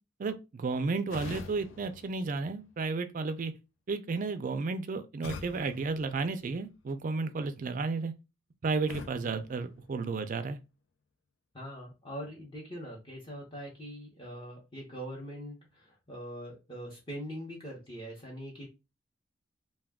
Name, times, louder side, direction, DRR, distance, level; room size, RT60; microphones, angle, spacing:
voice 1, 0.2-3.5 3.9-8.1 8.6-10.6, right 4 dB, 45° right, 0.4 m, -33 dB
sound 1, 1.1-3.1 5.2-6.9 8.9-10.5, left 4 dB, 75° left, 0.5 m, -46 dB
voice 2, 11.5-18.7, equal, 25° left, 0.8 m, -42 dB
2.3 x 2.2 x 3.4 m
head